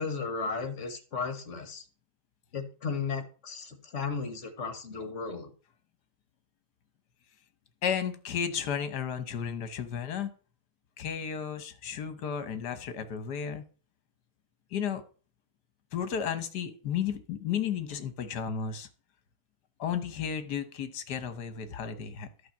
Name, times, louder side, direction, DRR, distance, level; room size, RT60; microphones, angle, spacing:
voice 1, 0.0-1.8 2.5-5.5, left 5 dB, 40° left, 8 dB, 1.8 m, -35 dB
voice 2, 7.8-10.3 11.0-13.6 14.7-15.0 15.9-18.9 19.8-22.3, left 8 dB, 60° left, 11 dB, 1.7 m, -33 dB
11.5 x 5.1 x 7.3 m, 0.38 s
omnidirectional pair, 2.0 m